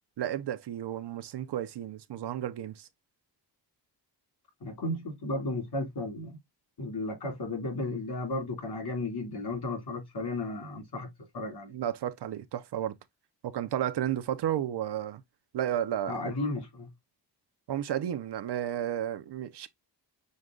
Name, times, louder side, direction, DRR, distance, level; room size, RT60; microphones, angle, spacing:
voice 1, 0.2-2.9 11.7-13.0 13.4-15.2 15.5-16.2 17.7-19.7, right 11 dB, 65° right, 0.6 m, -32 dB
voice 2, 4.6-6.4 6.8-11.1 11.3-11.7 16.1-16.9, left 2 dB, 60° left, 2.8 m, -34 dB
6.4 x 2.2 x 3.7 m
wide cardioid pair, 140°, 44 cm